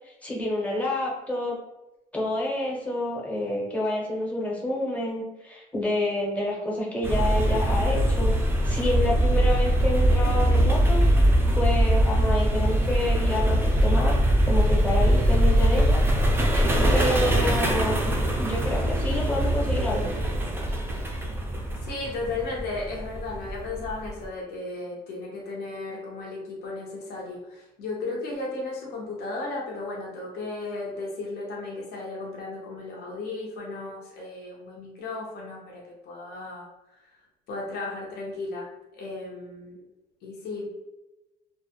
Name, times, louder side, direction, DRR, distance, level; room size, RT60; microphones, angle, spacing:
voice 1, 0.0-1.6 2.1-8.3 8.6-11.0 11.5-14.2 14.4-16.0 16.5-18.0 18.4-20.1, left 1 dB, 10° left, -3 dB, 0.8 m, -28 dB
sound 1, 7.0-24.2, right 1 dB, 15° right, 0.4 m, -22 dB
voice 2, 21.8-36.7 37.5-38.7 38.9-39.8 40.2-40.8, left 3 dB, 70° left, -3 dB, 0.7 m, -35 dB
2.1 x 2.0 x 2.8 m, 1.0 s
cardioid pair, 110°, 17 cm